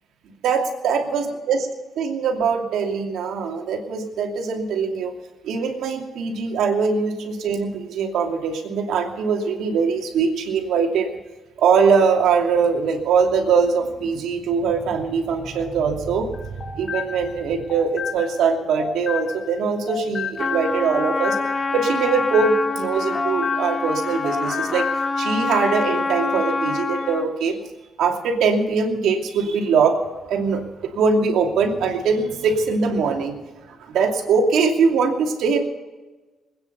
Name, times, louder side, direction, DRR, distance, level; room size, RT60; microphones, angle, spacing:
voice 1, 0.4-1.6 2.0-5.1 5.4-11.1 11.6-21.4 21.7-24.9 25.2-27.6 28.0-30.0 30.3-33.4 33.7-35.6, right 5 dB, 80° right, 2 dB, 2.6 m, -22 dB
sound 1, 16.3-19.6 19.9-24.0 24.2-25.1, left 6 dB, 50° left, 1.9 m, -32 dB
Trumpet, 20.4-27.3, left 3 dB, 30° left, 1.8 m, -25 dB
20.5 x 9.6 x 6.8 m, 1.2 s
cardioid pair, 90°, 0 cm